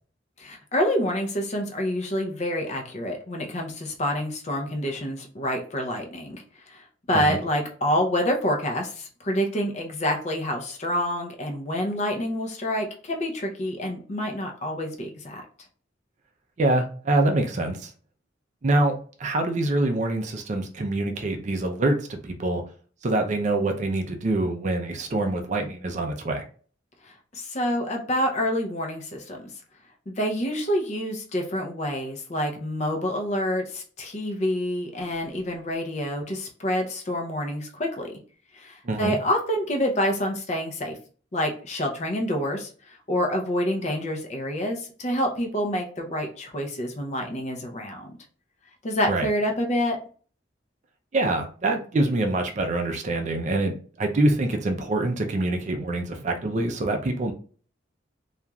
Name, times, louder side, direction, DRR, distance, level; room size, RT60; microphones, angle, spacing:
voice 1, 0.4-15.5 27.0-29.5 30.1-38.2 38.5-41.0 41.3-48.1 48.8-50.0, equal, 40° left, 2 dB, 0.6 m, -27 dB
voice 2, 16.6-17.9 18.6-18.9 19.2-22.6 23.0-26.5 38.8-39.2 49.1-49.3 51.1-57.3, right 2 dB, 40° right, 4 dB, 0.4 m, -25 dB
2.9 x 2.4 x 2.3 m, 0.41 s
head